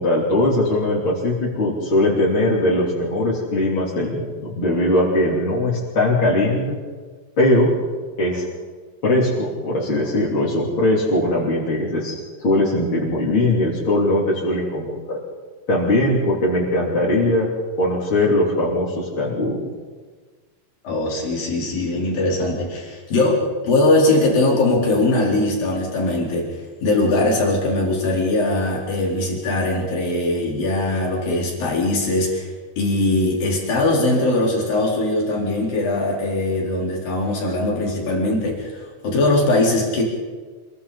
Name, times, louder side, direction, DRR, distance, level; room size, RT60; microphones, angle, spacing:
voice 1, 0.0-6.8 7.4-7.7 8.2-8.5 9.0-12.1 12.4-15.2 15.7-17.5 17.8-19.7, left 1 dB, 35° left, -6 dB, 4.1 m, -20 dB
voice 2, 20.8-32.5 32.8-40.0, left 2 dB, 80° left, -2 dB, 5.9 m, -21 dB
27.5 x 23.0 x 4.2 m, 1.4 s
omnidirectional pair, 4.0 m